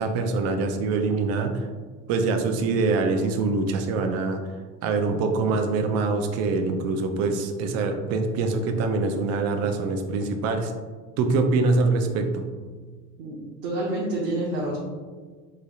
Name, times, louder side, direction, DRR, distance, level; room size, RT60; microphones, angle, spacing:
voice 1, 0.0-1.7 2.1-4.4 4.8-10.7 11.2-12.4, right 3 dB, 55° right, 5 dB, 0.5 m, -24 dB
voice 2, 13.6-14.8, right 1 dB, 90° right, -5 dB, 0.9 m, -27 dB
3.7 x 3.2 x 2.3 m, 1.5 s
cardioid pair, 125°, 29 cm